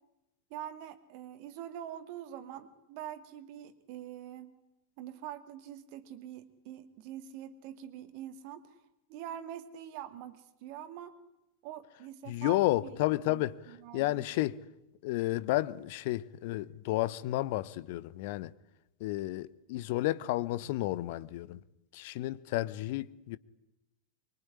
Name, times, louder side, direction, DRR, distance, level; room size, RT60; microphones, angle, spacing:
voice 1, 0.5-4.6 5.0-8.8 9.1-11.2 11.6-13.0 13.3-14.3, right 10 dB, 45° right, 2.3 m, -44 dB
voice 2, 12.3-13.5 13.9-14.6 15.0-18.5 19.0-21.6 21.9-23.4, left 17 dB, 50° left, 0.9 m, -31 dB
24.0 x 23.5 x 10.0 m
figure-of-eight pair, 90°, 0 cm